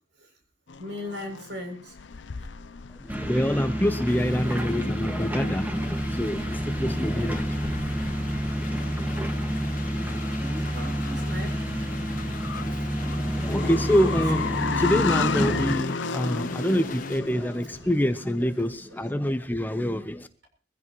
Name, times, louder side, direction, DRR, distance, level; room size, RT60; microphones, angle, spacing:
sound 1, 0.7-18.7, left 5 dB, 85° left, 0.6 m, -35 dB
voice 1, 0.8-1.9 2.4-2.5 10.4-11.5 12.7-12.9 14.1-14.2 14.5-14.7 17.7-17.8, left 1 dB, 75° right, 3 dB, 7.3 m, -38 dB
voice 2, 3.0-5.7 6.1-7.6 7.9-8.1 13.0-20.3, equal, 10° left, 10 dB, 0.8 m, -26 dB
sound 2, 3.1-15.8, equal, 10° right, 1.8 m, -29 dB
sound 3, 4.1-17.2, left 2 dB, 50° left, 1.2 m, -39 dB
22.5 x 16.0 x 3.1 m, 0.38 s
head